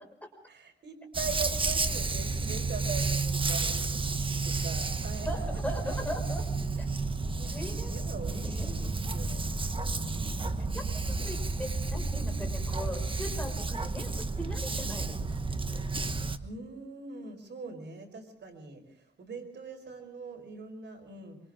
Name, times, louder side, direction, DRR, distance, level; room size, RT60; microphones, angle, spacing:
voice 1, 0.5-6.0 7.3-10.4 16.4-21.4, right 4 dB, 85° right, 4 dB, 5.2 m, -42 dB
Dog, 1.1-16.4, right 3 dB, 30° right, 1.2 m, -31 dB
sound 1, 5.3-16.2, left 2 dB, 70° left, 3.8 m, -45 dB
voice 2, 5.3-6.4 6.8-6.9 7.5-7.9 8.4-8.7 10.2-10.3 10.7-15.4, equal, 10° left, 2 dB, 5.9 m, -39 dB
26.5 x 26.0 x 3.8 m, 0.65 s
wide cardioid pair, 130°, 18 cm